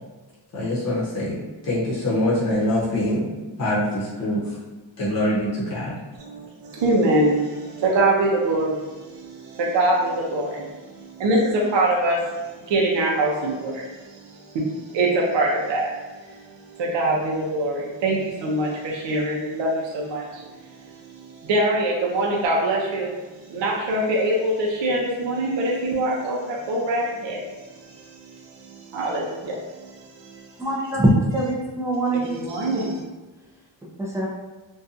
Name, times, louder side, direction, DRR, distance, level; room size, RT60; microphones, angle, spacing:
voice 1, 0.5-3.3 3.6-4.5 5.0-5.9, left 1 dB, 35° left, -9 dB, 0.8 m, -24 dB
voice 2, 6.2-30.7 32.2-33.0, right 1 dB, 70° right, -2 dB, 0.6 m, -24 dB
voice 3, 30.6-32.3 34.0-34.3, right 1 dB, 5° right, -3 dB, 0.4 m, -22 dB
2.6 x 2.3 x 2.4 m, 1.2 s
wide cardioid pair, 140°, 45 cm